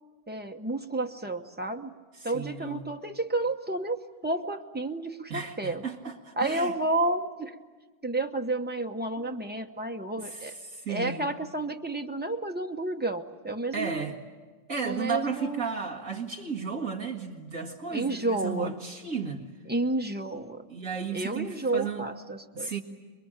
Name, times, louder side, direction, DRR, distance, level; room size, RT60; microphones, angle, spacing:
voice 1, 0.3-1.9 2.2-5.8 6.4-7.5 8.0-10.5 10.9-14.0 14.8-15.7 17.9-18.7 19.7-20.6 21.1-22.7, right 2 dB, 10° right, 4 dB, 0.6 m, -31 dB
voice 2, 2.1-2.9 5.3-6.8 9.2-9.4 10.2-11.3 13.7-14.2 14.7-19.4 20.7-22.1 22.5-22.8, right 5 dB, 50° right, 0 dB, 2.1 m, -34 dB
27.0 x 22.5 x 8.9 m, 1.4 s
omnidirectional pair, 1.9 m